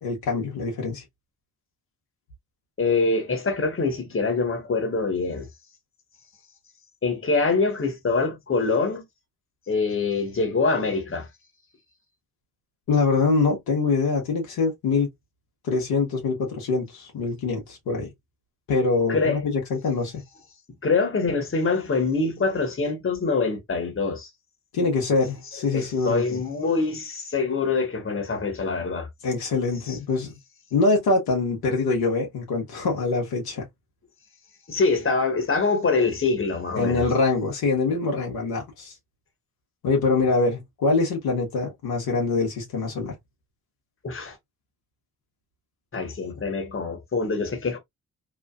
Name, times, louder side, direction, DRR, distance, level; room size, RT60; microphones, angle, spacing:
voice 1, 0.0-1.0 12.9-15.1 15.7-18.1 18.7-20.2 24.7-26.4 29.2-30.3 30.7-33.6 36.8-38.9 39.8-43.1, left 3 dB, 75° left, 1.2 m, -24 dB
voice 2, 2.8-5.5 7.0-9.0 9.7-11.3 19.1-19.5 20.8-24.3 25.7-29.1 29.9-30.0 34.7-37.0 44.0-44.4 45.9-47.8, left 4 dB, 35° left, 1.3 m, -24 dB
3.0 x 2.4 x 2.3 m
hypercardioid pair, 40°, 37 cm